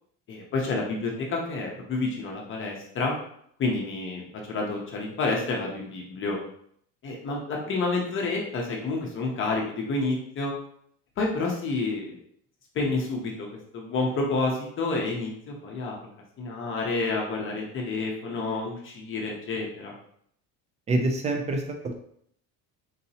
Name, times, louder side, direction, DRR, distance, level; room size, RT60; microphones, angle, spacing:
voice 1, 0.3-3.1 3.6-6.4 7.0-10.5 11.2-12.2 12.7-13.5 13.7-15.9 16.4-19.9, left 3 dB, 35° left, -1 dB, 0.7 m, -29 dB
voice 2, 20.9-21.9, right 2 dB, 20° right, 4 dB, 0.3 m, -26 dB
3.9 x 2.8 x 2.7 m, 0.67 s
cardioid pair, 155°, 37 cm